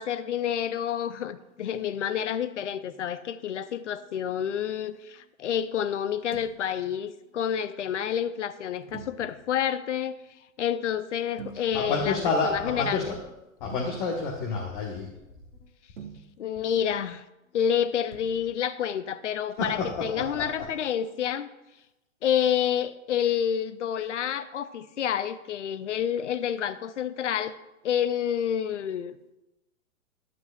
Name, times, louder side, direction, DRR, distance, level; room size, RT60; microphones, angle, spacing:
voice 1, 0.0-10.2 10.6-12.2 12.4-13.2 16.4-17.2 17.5-21.5 22.2-27.6 27.8-29.2, left 9 dB, 60° left, 14 dB, 0.6 m, -29 dB
sound 1, 6.2-6.6 8.9-9.4 11.3-12.1 13.7-14.3 16.0-16.4 18.1-18.6, right 7 dB, 65° right, 1.0 m, -44 dB
voice 2, 11.5-13.2 13.6-15.1 19.6-20.6, left 4 dB, 40° left, -1 dB, 1.2 m, -29 dB
11.0 x 7.8 x 2.3 m, 0.97 s
figure-of-eight pair, 110°, 41 cm